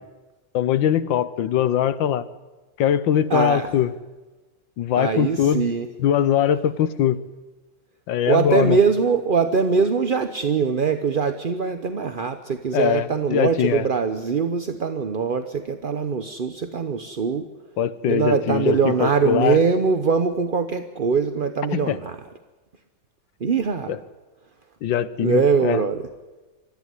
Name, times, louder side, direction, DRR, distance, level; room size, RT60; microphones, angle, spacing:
voice 1, 0.5-2.3 2.8-3.9 4.8-5.7 6.0-7.2 8.1-8.8 12.7-13.8 17.8-19.6 21.7-22.0 23.9-24.0 24.8-25.8, left 10 dB, 80° left, 15 dB, 1.7 m, -21 dB
voice 2, 3.3-3.7 5.0-5.9 8.3-17.5 18.1-22.2 23.4-24.0 25.2-26.1, right 5 dB, 40° right, 9 dB, 0.8 m, -22 dB
24.5 x 14.5 x 9.7 m, 1.2 s
omnidirectional pair, 2.0 m